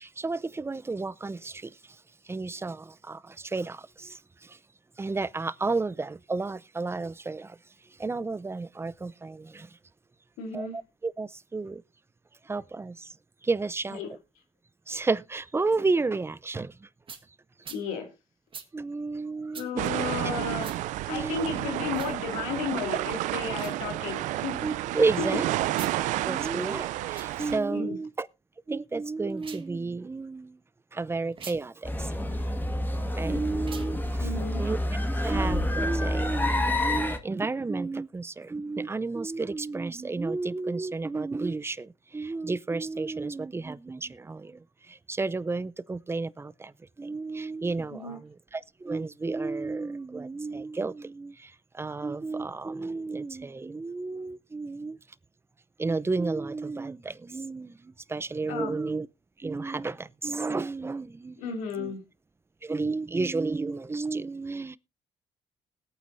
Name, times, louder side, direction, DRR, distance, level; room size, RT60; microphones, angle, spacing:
voice 1, 0.0-4.6 5.0-7.6 8.0-9.8 10.5-10.7 11.0-11.8 12.4-13.1 13.4-14.0 14.9-16.9 18.7-19.8 21.1-21.4 24.6-25.5 26.2-28.3 28.7-30.6 30.9-32.2 33.1-34.3 34.6-34.8 35.2-46.7 47.0-55.0 55.8-59.1 59.4-61.4 61.8-62.0 62.6-64.8, right 3 dB, 20° right, 0.6 m, -32 dB
voice 2, 10.4-10.8 13.9-14.2 17.7-18.1 19.6-20.7 21.1-24.8 25.2-25.4 27.7-28.0 34.2-34.6 47.9-48.2 58.5-58.7 61.4-62.0, left 5 dB, 90° left, 2.4 m, -33 dB
sound 1, 17.1-17.2 17.6-17.8 18.5-18.7 19.5-19.7 20.6-20.8 21.9-22.2 23.5-23.8 25.7-26.0 27.0-27.3 29.3-29.7 31.3-31.6 33.6-33.9, right 6 dB, 45° right, 1.6 m, -43 dB
sound 2, 19.8-27.6, right 15 dB, 80° right, 0.5 m, -31 dB
sound 3, 31.8-37.2, left 1 dB, 15° left, 1.7 m, -28 dB
20.0 x 8.9 x 2.6 m
supercardioid pair, 70°, 13 cm